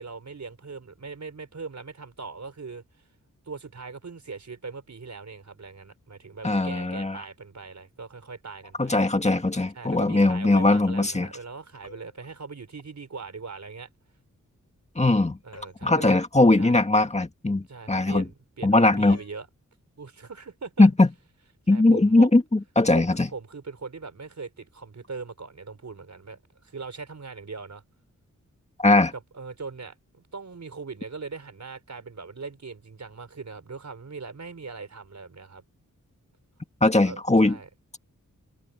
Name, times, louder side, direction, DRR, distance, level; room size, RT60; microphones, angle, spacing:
voice 1, 0.0-2.8 3.5-8.9 9.7-13.9 15.4-16.2 16.6-16.8 17.7-19.5 20.0-20.9 21.7-22.3 22.9-27.8 29.3-35.6 37.0-37.7, right 4 dB, 60° right, 4.6 m, -40 dB
voice 2, 6.4-7.2 8.8-11.3 15.0-15.4 15.8-18.2 18.6-19.2 20.8-21.1 21.7-23.3 28.8-29.1 36.8-37.6, left 2 dB, 20° left, 1.9 m, -20 dB
sound 1, 11.8-12.3 15.5-16.0 19.1-19.4, left 4 dB, 55° left, 7.3 m, -48 dB
wide cardioid pair, 90°, 31 cm